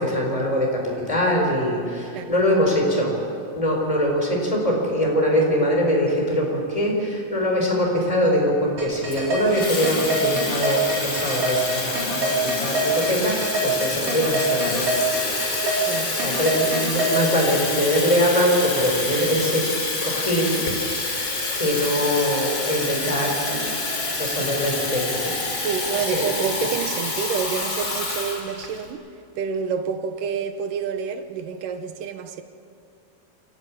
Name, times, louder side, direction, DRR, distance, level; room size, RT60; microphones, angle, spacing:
voice 1, 0.0-3.1 3.5-14.9 15.4-15.8 16.1-19.6 20.0-20.6 20.9-21.3 21.5-23.7 24.2-25.4 26.1-26.3, equal, 10° left, 4.6 m, -23 dB
sound 1, 8.8-17.1, equal, 40° right, 5.6 m, -25 dB
Water tap faucet / Fill (with liquid), 9.1-28.9, left 2 dB, 30° left, 3.2 m, -27 dB
voice 2, 15.8-16.2 25.6-29.1 29.4-32.4, right 7 dB, 75° right, 2.5 m, -28 dB
28.0 x 12.5 x 8.6 m
omnidirectional pair, 4.0 m